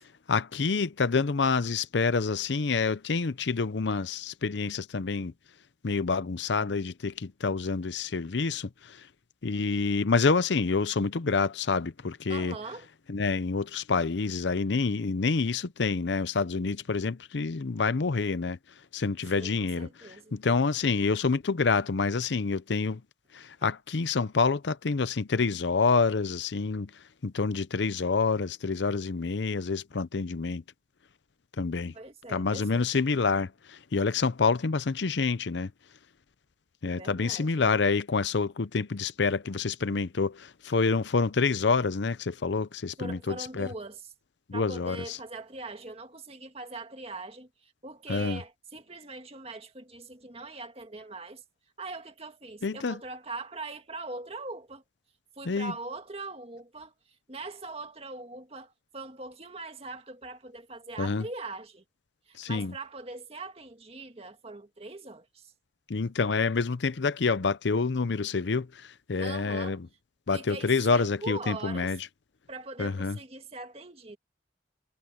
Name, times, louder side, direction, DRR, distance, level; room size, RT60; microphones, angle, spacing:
voice 1, 0.3-5.3 5.8-9.0 9.4-12.5 13.1-18.6 18.9-19.9 20.3-23.0 23.3-26.9 27.2-30.6 31.6-31.9 32.3-35.7 36.8-43.7 44.5-45.2 48.1-48.4 52.6-53.0 55.5-55.7 61.0-61.2 62.4-62.7 65.9-69.8 70.3-72.0 72.8-73.2, left 4 dB, 70° left, 0.6 m, -27 dB
voice 2, 12.3-12.9 19.3-20.4 23.6-23.7 31.9-33.0 36.8-37.7 43.0-44.1 44.5-51.4 51.8-54.8 55.4-61.8 62.3-65.5 69.2-69.8 70.3-71.9 72.5-74.2, right 3 dB, 35° right, 2.0 m, -42 dB
head